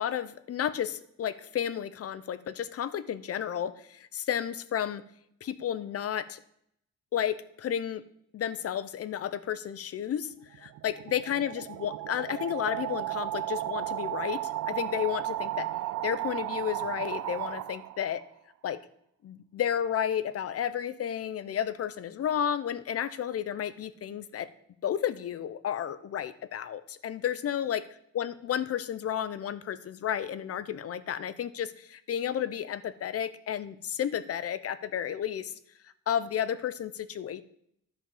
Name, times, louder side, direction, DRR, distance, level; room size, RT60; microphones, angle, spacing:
voice 1, 0.0-5.0 5.4-6.4 7.1-8.0 8.3-15.7 16.0-18.2 18.6-18.8 19.2-24.5 24.8-27.8 28.2-35.5 36.1-37.4, left 9 dB, 55° left, 15 dB, 0.7 m, -32 dB
sound 1, 10.4-18.2, right 14 dB, 80° right, 0.5 m, -34 dB
11.0 x 5.3 x 7.1 m, 0.71 s
cardioid pair, 150°, 30 cm